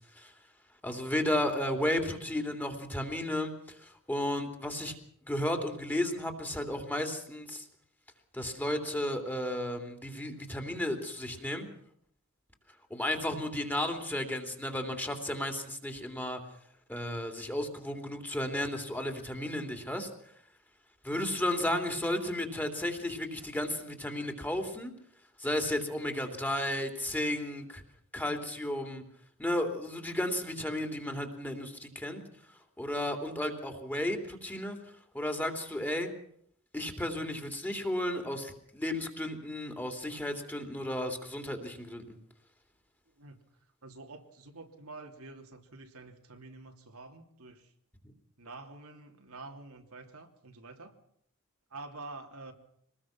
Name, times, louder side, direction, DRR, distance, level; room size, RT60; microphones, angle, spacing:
voice 1, 0.8-4.9 5.2-7.6 8.3-11.7 12.9-16.4 16.9-20.1 21.0-24.9 25.4-27.8 28.1-29.0 29.4-32.2 32.8-34.8 35.1-36.1 36.7-42.2, left 1 dB, 10° left, 5 dB, 3.1 m, -33 dB
voice 2, 43.2-43.5 43.8-47.7 48.4-51.0 51.7-52.5, right 3 dB, 85° right, 4 dB, 3.1 m, -48 dB
25.0 x 20.0 x 6.0 m, 0.66 s
head